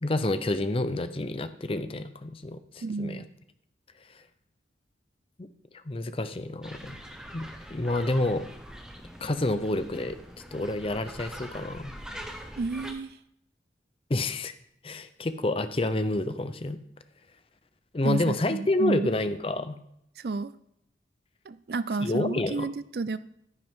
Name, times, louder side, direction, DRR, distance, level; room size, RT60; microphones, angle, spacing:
voice 1, 0.0-3.2 5.4-5.5 5.7-7.0 7.3-8.5 9.2-10.2 10.5-11.9 14.1-14.5 14.8-16.8 17.9-19.8 22.0-22.7, left 2 dB, 30° left, 11 dB, 0.6 m, -29 dB
voice 2, 2.8-3.3 12.6-13.2 18.0-19.1 20.2-20.5 21.5-23.2, right 3 dB, 60° right, 15 dB, 0.4 m, -31 dB
sound 1, 6.6-12.9, equal, 5° right, 1.0 m, -43 dB
10.5 x 9.7 x 3.6 m, 0.74 s
head